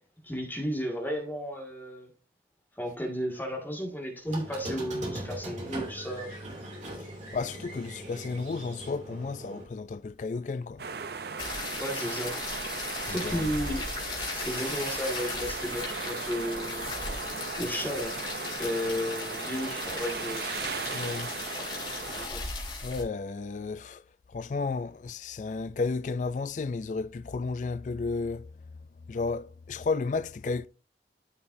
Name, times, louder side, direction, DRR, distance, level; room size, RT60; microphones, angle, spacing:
voice 1, 0.2-2.1 2.8-6.3 11.8-12.4 13.1-13.8 14.1-16.9 17.6-18.2 18.6-20.5 22.2-22.4, equal, 10° left, 1.9 m, -33 dB
Squeak, 4.3-9.6, right 1 dB, 40° right, 2.7 m, -40 dB
voice 2, 7.3-10.8 13.0-13.5 20.9-21.3 22.8-24.0 24.3-28.5 29.1-30.7, left 4 dB, 45° left, 0.3 m, -33 dB
sound 1, 10.8-22.3, right 5 dB, 60° right, 0.6 m, -37 dB
sound 2, 11.4-23.0, left 3 dB, 30° left, 3.1 m, -37 dB
13.5 x 5.7 x 2.7 m
head